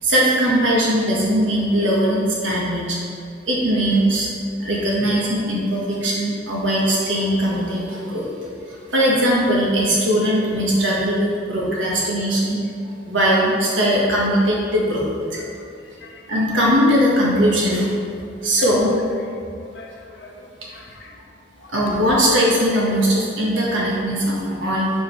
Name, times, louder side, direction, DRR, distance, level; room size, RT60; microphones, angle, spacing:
voice 1, 0.0-3.0 3.5-4.3 4.6-8.3 8.7-12.6 13.0-15.4 16.3-17.9 18.4-19.0 20.6-20.7 21.7-24.9, equal, 85° right, -4 dB, 1.5 m, -20 dB
voice 2, 19.7-21.2 21.6-21.7, left 3 dB, 65° left, 2 dB, 0.7 m, -43 dB
5.3 x 4.8 x 4.8 m, 2.4 s
head